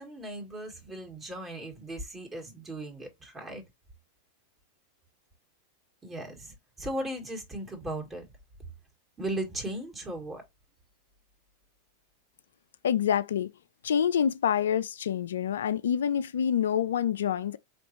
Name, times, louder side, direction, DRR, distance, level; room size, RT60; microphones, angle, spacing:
voice 1, 0.0-3.6 6.0-8.2 9.2-10.4, right 1 dB, 20° right, 2.0 m, -37 dB
voice 2, 12.8-13.5 13.8-17.6, left 8 dB, 75° left, 0.3 m, -27 dB
4.2 x 3.1 x 2.9 m
hypercardioid pair, 95°, 0 cm